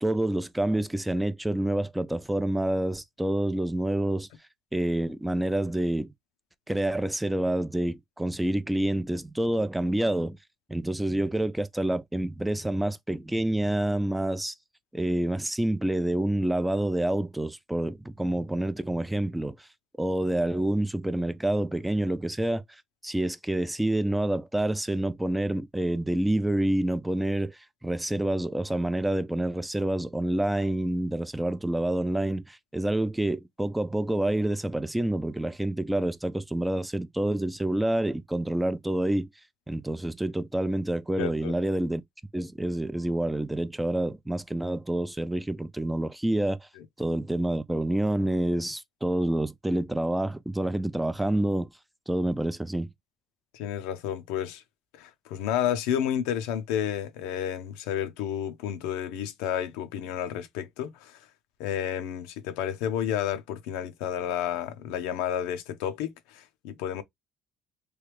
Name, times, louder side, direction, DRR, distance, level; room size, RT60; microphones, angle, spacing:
voice 1, 0.0-4.3 4.7-6.1 6.7-10.4 10.7-14.5 14.9-19.7 20.0-22.6 23.0-39.3 39.7-42.0 42.3-46.7 47.0-51.7 52.1-52.9, right 1 dB, 10° right, 0.4 m, -28 dB
voice 2, 41.2-41.5 46.8-46.9 53.5-54.6 54.9-61.3 61.6-67.0, left 10 dB, 85° left, 0.6 m, -31 dB
3.2 x 2.3 x 3.3 m
supercardioid pair, 85°, 0 cm